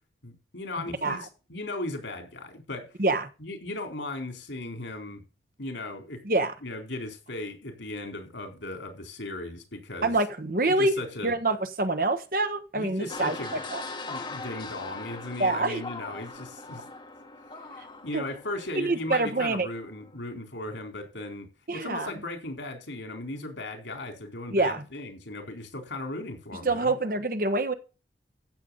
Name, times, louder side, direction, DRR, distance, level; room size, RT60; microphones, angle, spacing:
voice 1, 0.2-3.0 3.4-5.2 5.6-6.2 6.6-10.1 10.6-11.3 12.8-13.6 14.0-16.8 17.7-27.0, left 2 dB, 90° left, 4.0 m, -37 dB
voice 2, 3.0-3.3 6.2-6.5 10.0-10.9 11.2-13.4 13.7-13.8 15.4-15.8 18.1-18.2 18.7-19.7 21.7-22.1 24.5-24.8 26.6-27.7, right 2 dB, 50° right, 1.3 m, -26 dB
sound 1, 13.1-20.2, left 3 dB, 25° left, 1.7 m, -41 dB
15.0 x 7.1 x 4.0 m
head